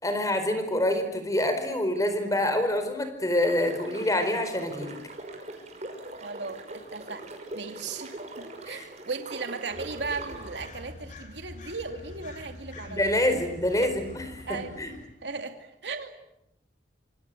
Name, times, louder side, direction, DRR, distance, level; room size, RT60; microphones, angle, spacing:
voice 1, 0.0-5.0 8.7-8.9 12.9-14.9, left 1 dB, 20° left, 8 dB, 4.8 m, -26 dB
sound 1, 3.4-10.7, right 2 dB, 40° right, 5.9 m, -41 dB
voice 2, 6.2-7.2 7.5-13.0 13.3-13.4 14.5-14.8 15.2-16.1, right 4 dB, 80° right, 6 dB, 2.5 m, -37 dB
sound 2, 9.7-15.1, left 1 dB, 45° left, 3.8 m, -45 dB
27.5 x 26.0 x 7.9 m, 0.86 s
head